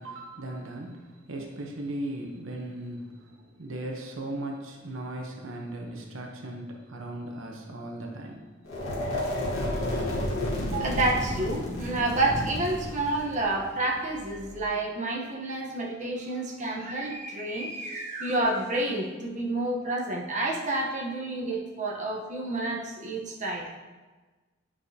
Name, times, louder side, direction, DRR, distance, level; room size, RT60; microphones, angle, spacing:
voice 1, 0.0-8.5 8.7-8.9 16.3-16.7 17.4-17.5, right 1 dB, 70° right, 1 dB, 0.9 m, -38 dB
sound 1, 8.6-14.6, left 1 dB, 90° left, 2.0 m, -31 dB
voice 2, 10.6-23.7, right 2 dB, 35° right, -2 dB, 1.0 m, -29 dB
10.5 x 4.9 x 2.8 m, 1.3 s
head